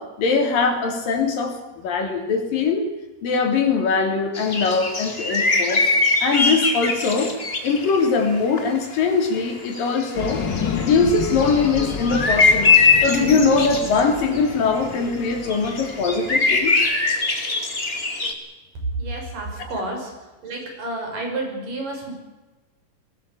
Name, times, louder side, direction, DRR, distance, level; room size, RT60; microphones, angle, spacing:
voice 1, 0.0-2.9 3.2-5.9 6.2-7.4 7.6-10.4 10.7-12.7 13.0-16.8 19.6-19.7, left 4 dB, 80° left, 4 dB, 4.9 m, -21 dB
sound 1, 4.3-8.8 9.0-9.1 9.4-9.5 9.7-18.3, left 4 dB, 20° left, 2.1 m, -22 dB
sound 2, 10.1-16.9, left 6 dB, 45° left, 1.6 m, -31 dB
voice 2, 19.0-20.1 20.4-22.1, right 2 dB, 70° right, 2 dB, 7.8 m, -30 dB
21.5 x 18.5 x 8.5 m, 1.1 s
omnidirectional pair, 3.9 m